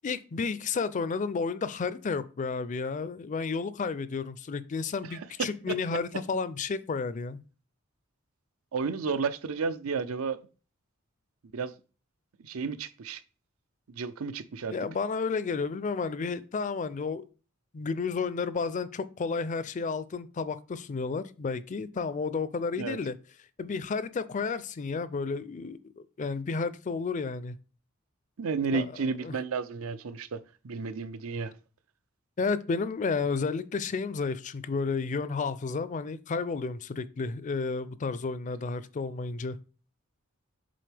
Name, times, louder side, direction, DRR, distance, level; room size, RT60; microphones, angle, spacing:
voice 1, 0.0-7.4 14.7-17.3 17.7-23.2 23.6-27.6 28.7-28.9 29.2-29.4 32.4-39.6, left 4 dB, 35° left, 0.4 m, -32 dB
voice 2, 8.7-10.4 11.5-11.7 12.4-13.2 13.9-14.8 22.8-23.0 28.4-31.5, right 5 dB, 90° right, 0.6 m, -32 dB
7.6 x 4.1 x 3.4 m
head